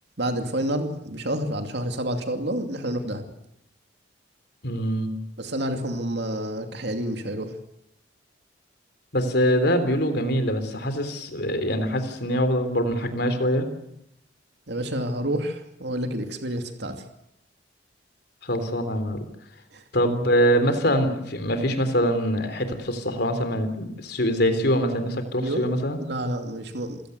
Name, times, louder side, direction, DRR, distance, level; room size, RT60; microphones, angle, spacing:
voice 1, 0.2-3.2 5.4-7.5 14.7-17.0 19.7-19.8 25.4-25.6 26.0-27.0, right 1 dB, 65° right, 5 dB, 2.6 m, -29 dB
voice 2, 4.6-5.1 9.1-13.7 18.4-19.2 19.9-26.0, equal, 60° left, 9 dB, 3.5 m, -24 dB
28.0 x 16.5 x 8.1 m, 0.77 s
head